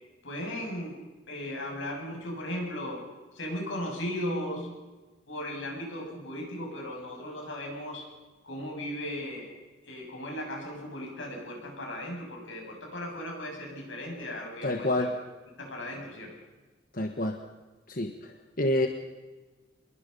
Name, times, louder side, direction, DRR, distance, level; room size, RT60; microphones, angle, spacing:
voice 1, 0.2-1.0 1.3-3.0 3.3-4.7 5.3-8.0 8.4-9.5 9.8-15.1 15.6-16.3, left 1 dB, 85° left, 0 dB, 7.7 m, -36 dB
voice 2, 14.6-15.1 16.9-17.4 17.9-18.9, left 1 dB, 50° left, 4 dB, 1.4 m, -28 dB
26.0 x 21.5 x 5.6 m, 1.2 s
head